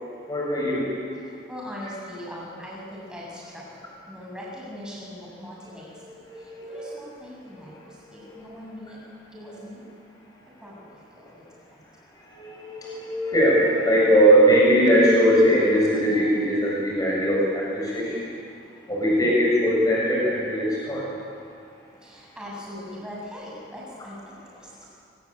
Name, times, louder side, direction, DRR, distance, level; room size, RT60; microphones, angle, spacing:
voice 1, 0.3-0.9 6.2-6.9 8.2-8.4 12.3-18.2 18.9-21.1, equal, 20° left, -4 dB, 7.3 m, -20 dB
voice 2, 1.5-3.8 4.1-6.2 6.6-9.0 9.3-9.9 10.6-10.8 11.1-11.4 11.7-11.8 18.9-19.0 22.0-24.2 24.6-24.9, left 1 dB, 5° right, -4 dB, 7.7 m, -40 dB
24.5 x 23.0 x 8.9 m, 2.3 s
head